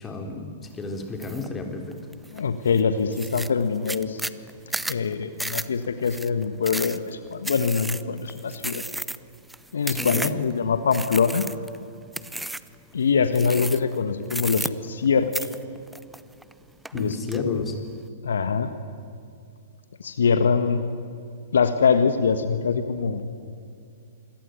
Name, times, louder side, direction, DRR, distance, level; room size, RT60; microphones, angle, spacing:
voice 1, 0.0-2.0 10.0-10.4 16.9-17.8, left 3 dB, 15° left, 4 dB, 3.9 m, -32 dB
sound 1, 1.2-1.5 1.9-2.4 2.8-2.9 3.1-10.5 10.9-11.8 12.1-12.7 13.3-14.0 14.3-15.1 15.3-16.5 16.8-17.4, right 1 dB, 5° right, 0.7 m, -33 dB
voice 2, 2.3-4.2 4.9-8.8 9.7-11.5 12.9-15.3 16.9-17.7 18.2-18.7 20.0-20.9 21.5-23.2, left 5 dB, 70° left, 10 dB, 1.5 m, -23 dB
27.0 x 21.5 x 9.4 m, 2.4 s
figure-of-eight pair, 110°, 0 cm